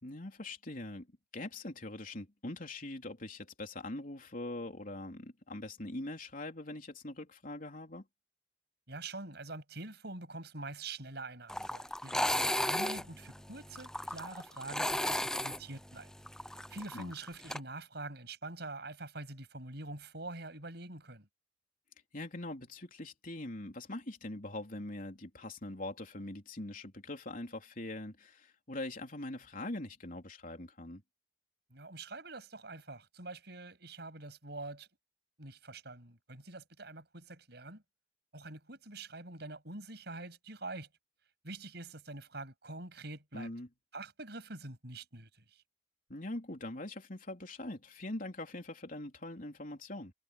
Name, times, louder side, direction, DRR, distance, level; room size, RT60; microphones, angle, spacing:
voice 1, 0.0-1.1 1.3-8.1 16.9-17.1 22.1-31.0 43.3-43.7 46.1-50.1, left 2 dB, 50° left, 3.8 m, -42 dB
voice 2, 8.9-16.1 16.7-21.3 31.7-34.9 35.4-37.8 38.3-40.9 41.4-43.5 43.9-45.6, right 2 dB, 65° right, 8.0 m, -45 dB
sound 1, 11.5-17.6, left 1 dB, 5° left, 0.6 m, -35 dB
head